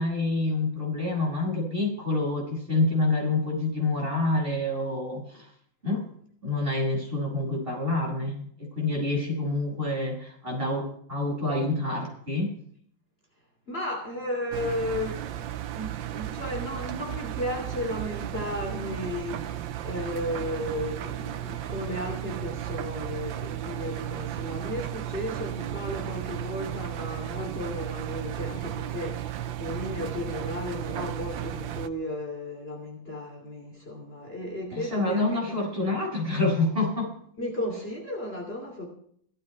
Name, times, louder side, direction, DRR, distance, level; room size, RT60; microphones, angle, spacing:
voice 1, 0.0-5.5 5.8-6.1 6.4-12.6 34.7-37.2, left 2 dB, 25° right, -3 dB, 6.9 m, -27 dB
voice 2, 13.7-35.6 37.4-38.9, left 1 dB, 30° left, 0 dB, 3.3 m, -34 dB
Engine, 14.5-31.9, right 12 dB, 75° right, 1.5 m, -34 dB
16.5 x 14.0 x 4.6 m, 0.64 s
omnidirectional pair, 2.1 m